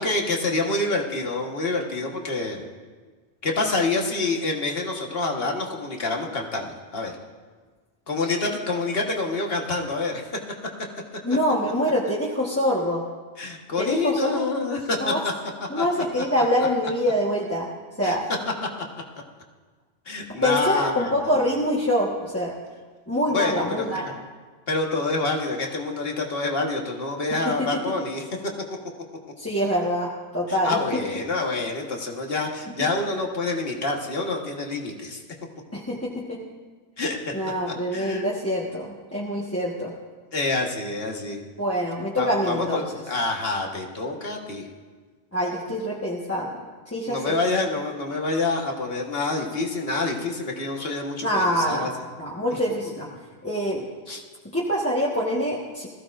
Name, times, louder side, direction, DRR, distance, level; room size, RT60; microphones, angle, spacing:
voice 1, 0.0-2.7 3.4-7.1 8.1-10.2 13.4-15.3 15.7-15.8 16.4-16.5 18.0-18.1 18.4-18.5 20.0-21.4 23.3-24.2 24.7-28.2 30.5-35.2 37.0-37.2 37.7-38.3 40.3-41.4 42.2-44.7 47.0-51.9 52.5-52.6 54.1-54.2, left 3 dB, 65° left, 1 dB, 1.7 m, -27 dB
voice 2, 11.2-13.0 13.8-14.4 15.0-15.2 15.7-17.7 18.0-18.2 20.3-22.5 23.1-24.0 27.4-27.8 29.4-31.0 35.7-36.4 37.3-39.9 41.6-42.8 45.3-47.3 51.2-51.9 52.2-53.1 53.4-53.8 54.5-55.9, equal, 15° left, -6 dB, 1.3 m, -25 dB
20.5 x 15.0 x 2.5 m, 1.4 s
omnidirectional pair, 1.1 m